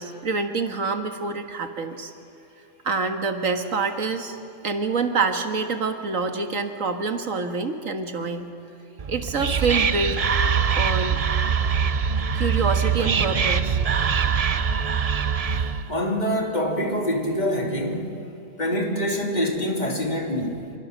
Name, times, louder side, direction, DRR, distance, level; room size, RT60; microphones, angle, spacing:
voice 1, 0.0-2.1 2.8-4.4 4.6-8.5 9.1-10.3 10.8-11.2 12.3-13.8, right 4 dB, 80° right, 6 dB, 2.0 m, -26 dB
Whispering, 9.0-15.9, right 6 dB, 40° right, 0.6 m, -23 dB
voice 2, 15.9-18.2 18.6-20.7, equal, 35° left, 1 dB, 3.0 m, -25 dB
26.5 x 26.5 x 6.6 m, 2.6 s
omnidirectional pair, 1.4 m